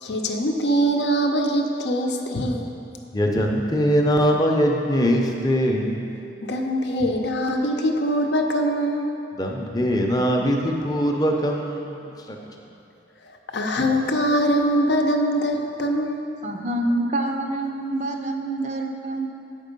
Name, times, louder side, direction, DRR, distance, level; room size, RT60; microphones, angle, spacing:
voice 1, 0.0-2.7 6.4-9.2 13.2-16.3, equal, 70° left, 3 dB, 0.7 m, -23 dB
voice 2, 3.1-6.1 9.3-12.4, equal, 20° left, 1 dB, 0.6 m, -22 dB
voice 3, 16.4-19.3, right 1 dB, 40° right, 3 dB, 0.5 m, -26 dB
7.8 x 5.4 x 5.2 m, 2.7 s
head